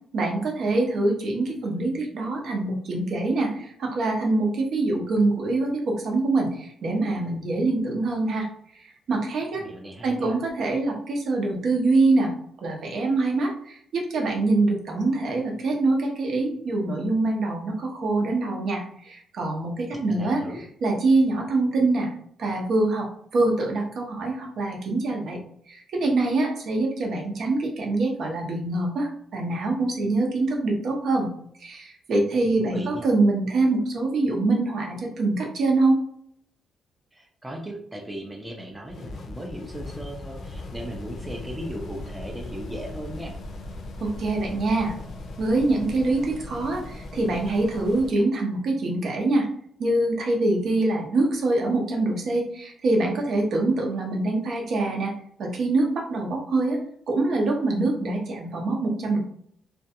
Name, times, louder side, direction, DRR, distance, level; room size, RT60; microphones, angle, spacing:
voice 1, 0.1-8.5 8.8-9.6 10.0-12.3 12.6-20.4 20.8-22.1 22.4-25.4 25.7-31.3 31.6-36.0 44.0-44.9 45.4-49.5 49.8-55.1 55.4-56.8 57.1-59.2, right 2 dB, 60° right, 1 dB, 0.7 m, -24 dB
voice 2, 9.6-10.4 19.9-20.6 32.6-33.1 37.1-43.3, equal, 10° right, 0 dB, 0.4 m, -37 dB
sound 1, 38.9-48.2, left 2 dB, 60° left, 0.4 m, -38 dB
2.4 x 2.2 x 2.8 m, 0.64 s
cardioid pair, 140°, 0 cm